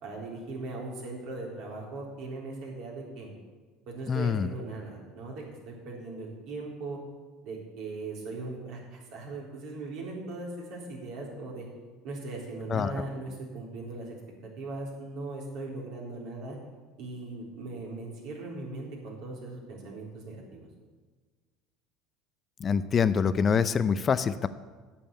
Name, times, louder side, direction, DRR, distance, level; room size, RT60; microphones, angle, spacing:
voice 1, 0.0-3.3 3.9-7.0 7.4-11.7 12.0-14.2 14.4-16.6 17.0-20.7, right 2 dB, 65° right, -2 dB, 3.8 m, -39 dB
voice 2, 4.1-4.5 12.7-12.9 22.6-24.5, left 6 dB, 35° left, 13 dB, 0.6 m, -25 dB
8.6 x 7.1 x 8.8 m, 1.4 s
hypercardioid pair, 85°, 0 cm